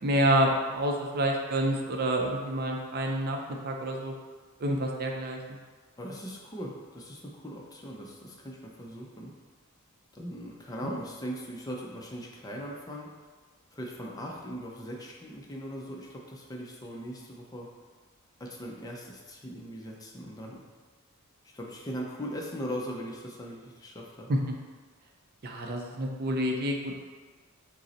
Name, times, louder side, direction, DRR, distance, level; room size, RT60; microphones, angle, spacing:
voice 1, 0.0-3.4 3.6-4.1 4.6-5.4 10.8-10.9 24.3-24.4 25.4-26.9, right 1 dB, 45° right, 1 dB, 0.5 m, -28 dB
voice 2, 6.0-9.3 10.1-13.1 13.7-17.7 18.4-20.6 21.4-24.3, equal, 15° left, -1 dB, 0.4 m, -39 dB
5.1 x 2.0 x 4.1 m, 1.4 s
head